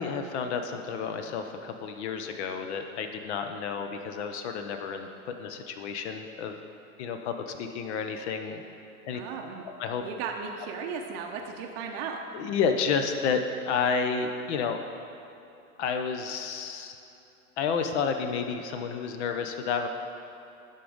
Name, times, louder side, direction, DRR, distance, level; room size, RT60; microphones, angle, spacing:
voice 1, 0.0-6.6 7.0-8.6 9.0-9.2 9.8-10.0 12.3-13.4 13.7-14.8 15.8-17.0 17.6-19.9, left 6 dB, 50° left, 6 dB, 0.7 m, -30 dB
voice 2, 9.1-9.6 10.0-12.2, right 6 dB, 45° right, 2 dB, 0.7 m, -36 dB
11.0 x 3.9 x 5.0 m, 2.8 s
hypercardioid pair, 115°, 44 cm